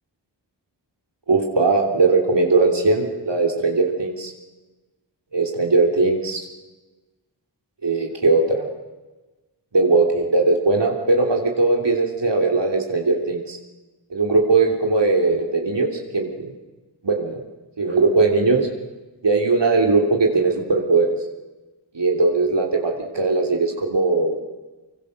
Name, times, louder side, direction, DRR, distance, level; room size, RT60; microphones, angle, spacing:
voice 1, 1.3-4.3 5.3-6.4 7.8-8.6 9.7-13.6 14.1-16.5 17.0-17.4 17.8-18.7 19.2-21.1 21.9-24.4, right 3 dB, 75° right, 1 dB, 3.2 m, -19 dB
25.5 x 23.5 x 6.6 m, 1.2 s
wide cardioid pair, 80°, 43 cm